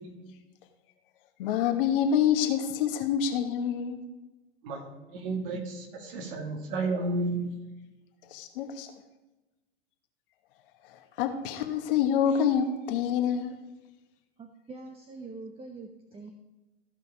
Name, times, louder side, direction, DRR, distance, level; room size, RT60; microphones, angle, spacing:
voice 1, 0.0-0.3 4.6-7.5, right 3 dB, 55° right, 3 dB, 2.4 m, -32 dB
voice 2, 1.4-4.0 8.3-8.9 11.2-13.5, left 8 dB, 55° left, 6 dB, 1.5 m, -26 dB
voice 3, 14.4-16.3, right 3 dB, 20° right, 5 dB, 1.0 m, -44 dB
14.5 x 5.5 x 5.0 m, 1.1 s
hypercardioid pair, 100°, 32 cm